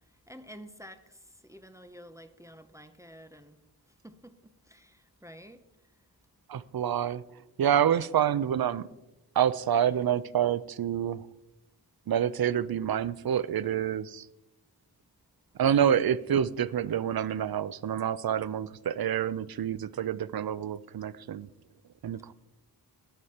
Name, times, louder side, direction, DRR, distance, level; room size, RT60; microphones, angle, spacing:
voice 1, 0.1-3.6 3.9-5.6 22.2-22.3, equal, 10° right, 0.7 m, -50 dB
voice 2, 6.5-7.2 7.6-8.8 9.4-11.3 12.1-14.3 15.6-21.5 22.0-22.3, right 9 dB, 65° right, 0.6 m, -27 dB
14.5 x 9.4 x 4.2 m
wide cardioid pair, 105°, 40 cm